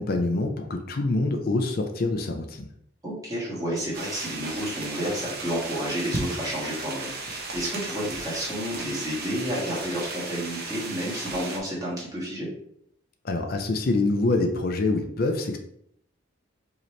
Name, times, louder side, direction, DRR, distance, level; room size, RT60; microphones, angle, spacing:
voice 1, 0.0-2.7 13.2-15.6, left 2 dB, 50° left, 4 dB, 0.5 m, -25 dB
voice 2, 3.0-12.5, equal, 20° right, -6 dB, 1.6 m, -31 dB
sound 1, 3.9-11.6, right 3 dB, 50° right, 0.9 m, -35 dB
5.0 x 2.9 x 3.2 m, 0.71 s
head